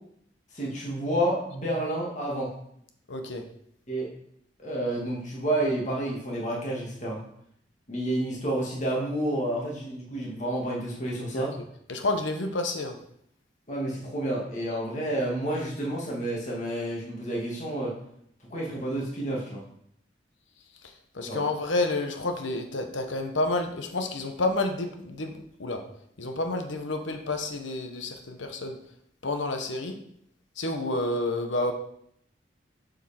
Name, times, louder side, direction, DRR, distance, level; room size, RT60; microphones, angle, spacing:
voice 1, 0.5-2.5 3.9-4.1 4.6-7.2 7.9-11.5 13.7-17.9 18.5-19.6 21.3-21.4, right 1 dB, 40° left, -3 dB, 2.2 m, -30 dB
voice 2, 3.1-3.4 11.3-11.6 11.9-13.0 20.8-25.8 26.2-28.8 29.2-30.0 30.6-31.7, left 2 dB, 80° left, 5 dB, 1.1 m, -29 dB
7.6 x 6.5 x 4.4 m, 0.70 s
head